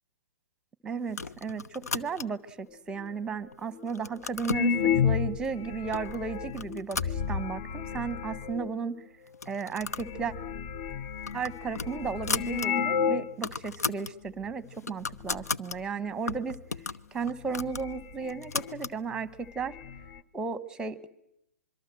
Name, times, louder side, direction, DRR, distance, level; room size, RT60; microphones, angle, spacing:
voice 1, 0.8-9.0 9.5-10.3 11.3-16.6 17.1-19.8 20.3-21.1, right 5 dB, 10° right, 18 dB, 1.2 m, -34 dB
sound 1, 1.1-2.5 3.1-3.6 3.9-4.7 5.4-5.5 5.9-6.2 6.5-7.8 8.1-8.2 8.4-8.5 9.3-10.1 10.5-10.6 11.0-12.7 13.0-13.1 13.3-14.1 14.5-15.8 16.3-19.0, left 5 dB, 80° left, 0.9 m, -36 dB
sound 2, 3.0-3.1 3.8-3.9 4.4-8.7 9.5-9.6 9.8-13.4 13.7-13.8 14.4-14.7 15.0-15.5 16.8-16.9 17.3-18.9 19.1-19.2 19.5-20.2, left 7 dB, 40° left, 1.1 m, -32 dB
25.0 x 23.5 x 7.6 m, 0.83 s
hypercardioid pair, 125°, 8 cm